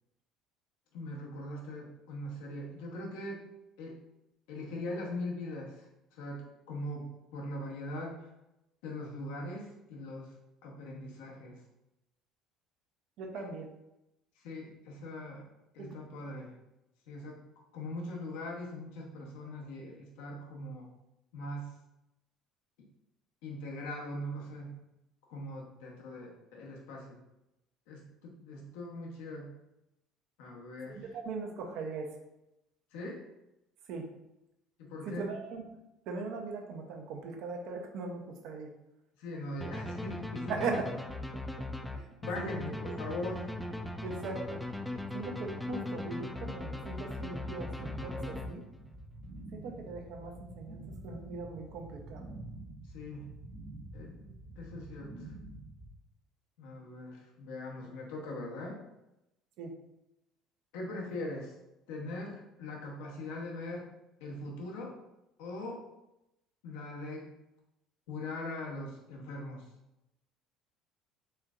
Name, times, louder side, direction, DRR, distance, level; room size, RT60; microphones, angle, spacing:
voice 1, 0.9-3.4 3.8-4.0 4.5-5.8 6.1-8.3 8.8-10.3 10.6-11.6 13.3-13.5 14.4-15.5 15.7-16.5 17.1-17.4 17.7-20.9 21.3-21.7 23.4-24.8 25.3-27.2 27.9-29.5 30.4-31.2 32.9-33.2 34.8-35.3 39.2-40.9 42.2-43.4 52.9-53.3 53.9-54.1 54.6-55.3 56.6-58.8 60.7-61.5 61.9-63.9 64.2-65.0 65.4-65.8 66.6-67.3 68.1-69.6, left 1 dB, 75° left, -1 dB, 0.9 m, -41 dB
voice 2, 13.2-13.7 15.8-15.9 30.9-32.1 33.9-34.0 35.0-35.6 36.1-38.7 40.5-40.9 41.9-42.0 42.4-42.7 44.0-44.6 45.1-48.6 49.5-52.2 59.6-59.7, right 4 dB, 65° right, 3 dB, 0.7 m, -39 dB
sound 1, 39.6-48.9, left 1 dB, 5° left, 0.4 m, -39 dB
sound 2, 47.3-55.9, right 2 dB, 50° right, 1.4 m, -47 dB
4.3 x 3.4 x 2.4 m, 0.90 s
hypercardioid pair, 75°, 0 cm